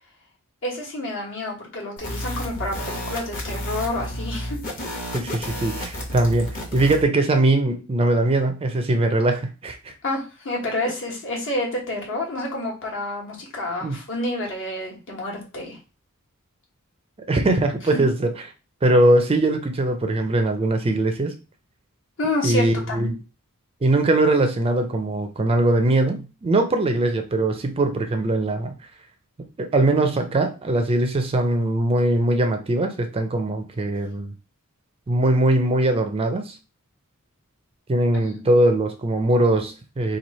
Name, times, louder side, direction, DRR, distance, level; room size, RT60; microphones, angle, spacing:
voice 1, 0.6-4.6 10.0-15.8 22.2-23.1 38.1-38.2, left 1 dB, 60° left, -1 dB, 1.3 m, -29 dB
sound 1, 2.0-7.0, equal, 40° left, 1.0 m, -31 dB
voice 2, 5.1-9.9 13.8-14.0 17.3-18.3 18.8-21.3 22.4-23.1 23.8-28.7 29.6-34.3 35.1-36.6 37.9-40.2, right 2 dB, 25° right, 6 dB, 0.4 m, -21 dB
3.1 x 2.5 x 4.1 m, 0.31 s
head